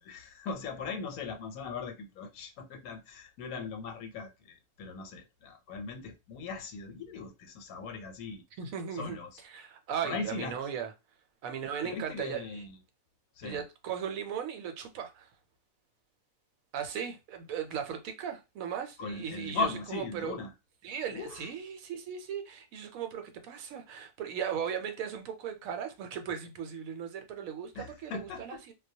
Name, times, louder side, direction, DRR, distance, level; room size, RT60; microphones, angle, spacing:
voice 1, 0.0-8.4 8.9-9.4 10.0-10.5 11.8-12.8 13.4-13.6 19.0-20.5 21.1-21.5 27.7-28.6, left 4 dB, 85° left, 1.1 m, -39 dB
voice 2, 8.6-9.2 9.4-10.9 11.4-12.6 13.4-15.3 16.7-20.4 20.8-28.7, right 8 dB, 75° right, 1.0 m, -37 dB
2.3 x 2.1 x 2.6 m
omnidirectional pair, 1.5 m